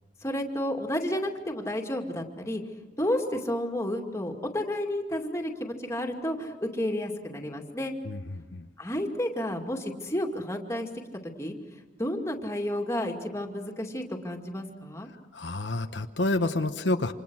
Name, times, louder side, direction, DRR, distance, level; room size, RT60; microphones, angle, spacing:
voice 1, 0.2-2.6 3.0-7.9 8.8-10.9 11.4-15.1, left 1 dB, 15° left, 2 dB, 2.4 m, -31 dB
voice 2, 8.0-8.7 15.3-17.1, left 2 dB, 80° left, 7 dB, 1.1 m, -29 dB
28.0 x 26.5 x 6.3 m, 1.2 s
head